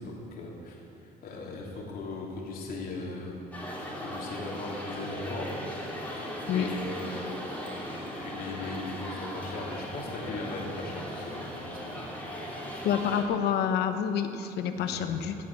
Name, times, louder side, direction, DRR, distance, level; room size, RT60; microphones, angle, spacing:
voice 1, 0.0-3.5 4.0-5.5 5.8-12.0 14.7-15.1, left 3 dB, 60° left, -2 dB, 3.3 m, -39 dB
sound 1, 3.5-13.2, equal, 10° left, 3.5 m, -38 dB
voice 2, 12.8-15.3, left 8 dB, 75° left, 8 dB, 1.1 m, -28 dB
17.0 x 8.3 x 7.3 m, 2.9 s
cardioid pair, 110°, 17 cm